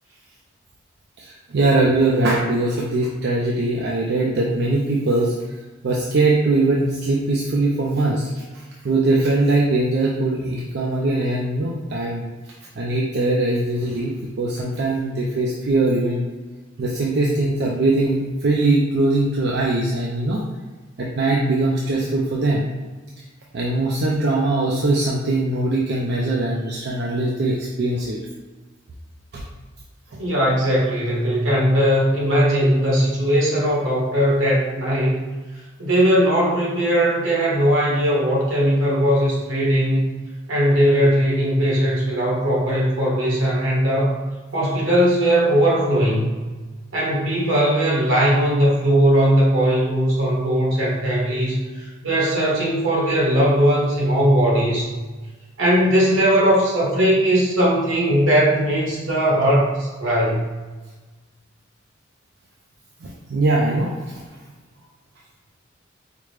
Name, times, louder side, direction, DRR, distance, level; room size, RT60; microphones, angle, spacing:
voice 1, 1.2-5.4 5.8-8.4 8.8-12.3 12.8-16.2 16.8-20.4 21.0-22.7 23.5-28.2 29.3-29.4 30.1-30.2 63.0-64.2, right 2 dB, 55° right, -3 dB, 0.4 m, -21 dB
voice 2, 30.2-35.2 35.8-40.0 40.5-44.2 44.5-46.4 46.9-54.9 55.6-60.4, equal, 75° right, -5 dB, 1.3 m, -19 dB
4.9 x 2.1 x 3.2 m, 1.3 s
head